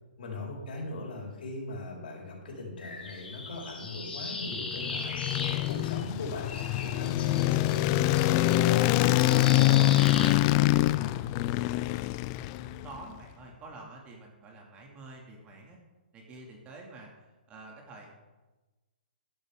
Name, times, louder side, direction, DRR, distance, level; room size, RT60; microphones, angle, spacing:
voice 1, 0.2-9.2 9.5-11.1, left 2 dB, 65° left, -2 dB, 4.7 m, -40 dB
sound 1, 2.8-6.2 6.5-10.3, left 3 dB, 90° left, 3.0 m, -38 dB
sound 2, 4.6-13.0, left 16 dB, 30° left, 0.4 m, -25 dB
voice 2, 12.3-15.8 16.1-18.1, right 3 dB, 20° right, 0 dB, 2.4 m, -48 dB
13.5 x 11.5 x 3.7 m, 1.2 s
hypercardioid pair, 140°, 5 cm